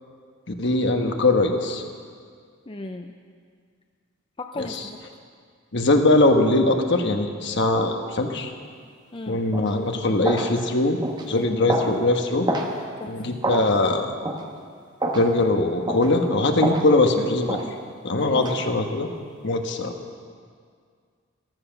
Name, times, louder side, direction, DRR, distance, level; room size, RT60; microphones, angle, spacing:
voice 1, 0.5-1.8 4.6-4.7 5.7-8.5 9.3-11.0 11.3-12.5 13.1-14.1 15.1-17.6 18.0-19.1 19.4-19.9, left 2 dB, 60° left, 4 dB, 1.3 m, -21 dB
voice 2, 2.7-3.1 4.4-5.0 9.1-9.4 11.3-11.8 13.0-13.1 18.2-18.6, left 2 dB, 25° left, 4 dB, 0.5 m, -36 dB
sound 1, 9.5-9.7 10.2-10.5 11.0-11.2 11.7-11.9 12.5-12.7 13.4-13.6 14.2-14.4 15.0-15.3 15.9-16.1 16.6-16.9 17.5-17.7 18.4-18.6, right 1 dB, 20° right, 1.3 m, -26 dB
14.0 x 14.0 x 5.9 m, 2.1 s
head